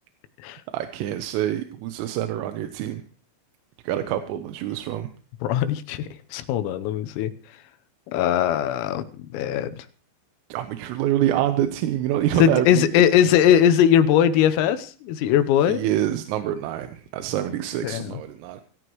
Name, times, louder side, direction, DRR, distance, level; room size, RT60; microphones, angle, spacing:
voice 1, 0.7-3.0 3.9-5.1 10.5-12.9 15.7-18.6, right 12 dB, 85° right, 8 dB, 3.6 m, -26 dB
voice 2, 5.4-7.3 8.1-9.0 9.3-9.7 12.4-15.8 17.8-18.2, left 9 dB, 85° left, 10 dB, 3.7 m, -20 dB
26.0 x 14.0 x 3.1 m, 0.37 s
omnidirectional pair, 5.9 m